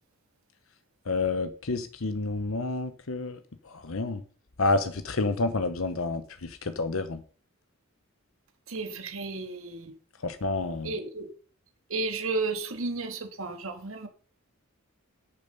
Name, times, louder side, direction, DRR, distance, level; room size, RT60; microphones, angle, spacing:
voice 1, 1.1-3.4 3.7-4.2 4.6-7.2 10.2-10.9, left 3 dB, 70° left, 0.9 m, -29 dB
voice 2, 8.7-9.9 10.8-11.3 11.9-14.1, right 3 dB, 70° right, 1.9 m, -33 dB
11.0 x 7.0 x 5.4 m
head